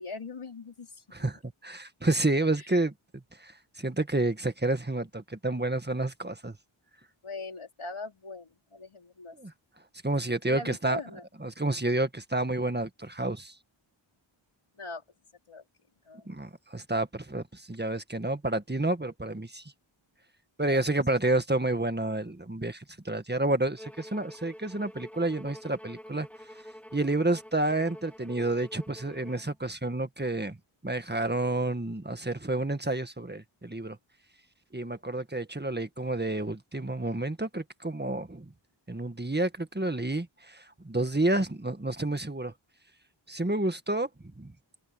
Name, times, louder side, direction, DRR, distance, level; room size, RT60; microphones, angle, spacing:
voice 1, 0.0-1.3 2.6-2.7 7.2-9.4 10.4-11.2 14.8-15.0 15.5-15.6 16.1-16.3 20.7-20.8, left 3 dB, 80° left, 3.8 m, -41 dB
voice 2, 1.1-2.9 3.4-3.5 3.8-6.6 9.4-9.5 10.0-11.0 11.4-13.6 16.3-19.6 20.6-26.3 26.9-30.6 30.8-34.0 34.7-38.4 38.9-42.5 43.3-44.1 44.4-44.5, right 2 dB, 20° right, 1.7 m, -29 dB
Bowed string instrument, 23.8-29.5, equal, 5° left, 4.8 m, -48 dB
open air
wide cardioid pair, 60°, 50 cm